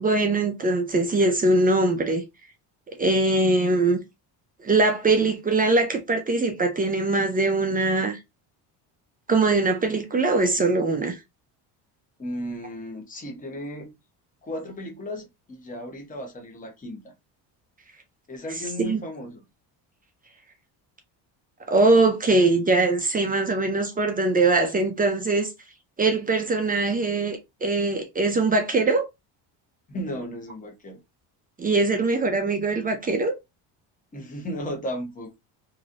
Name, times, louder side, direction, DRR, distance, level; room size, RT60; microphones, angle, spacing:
voice 1, 0.0-2.2 3.0-4.0 4.6-8.2 9.3-11.2 18.8-19.0 21.7-25.5 26.0-29.1 31.6-33.3, right 2 dB, 20° right, 0.5 m, -22 dB
voice 2, 12.2-14.0 14.4-17.1 18.3-19.4 29.9-31.0 34.1-35.3, equal, 20° left, 0.9 m, -35 dB
3.0 x 2.7 x 2.5 m
cardioid pair, 135°, 42 cm